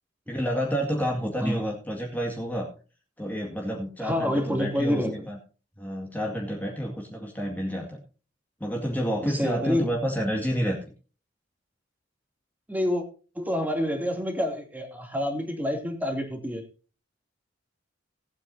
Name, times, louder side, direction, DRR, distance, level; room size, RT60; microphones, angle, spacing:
voice 1, 0.3-2.7 3.2-5.4 5.8-8.0 8.6-10.8, equal, 10° left, -1 dB, 2.1 m, -29 dB
voice 2, 4.0-5.3 9.2-9.9 12.7-13.0 13.3-16.7, left 1 dB, 10° right, 3 dB, 2.7 m, -28 dB
19.0 x 8.9 x 2.7 m, 0.36 s
head